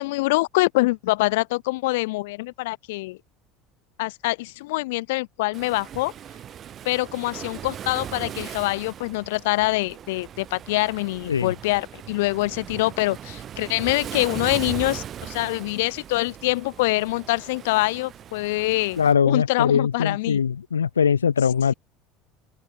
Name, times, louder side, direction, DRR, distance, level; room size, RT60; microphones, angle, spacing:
voice 1, 0.0-3.2 4.0-6.1 6.8-19.0 19.2-20.4, left 21 dB, 70° left, 2.9 m, -25 dB
Waves surf, 5.5-19.1, right 10 dB, 45° right, 6.7 m, -39 dB
voice 2, 19.0-21.7, left 7 dB, 90° left, 2.6 m, -21 dB
open air
hypercardioid pair, 70°, 0 cm